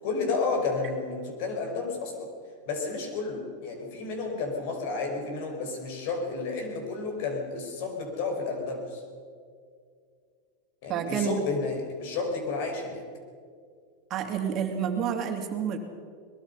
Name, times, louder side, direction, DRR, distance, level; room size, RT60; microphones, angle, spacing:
voice 1, 0.0-2.3 2.7-9.0 10.8-13.0, left 4 dB, 60° left, 3 dB, 5.5 m, -31 dB
voice 2, 10.9-11.4 14.1-15.8, right 8 dB, 35° right, 4 dB, 2.8 m, -29 dB
23.0 x 21.0 x 5.7 m, 2.2 s
supercardioid pair, 135°, 0 cm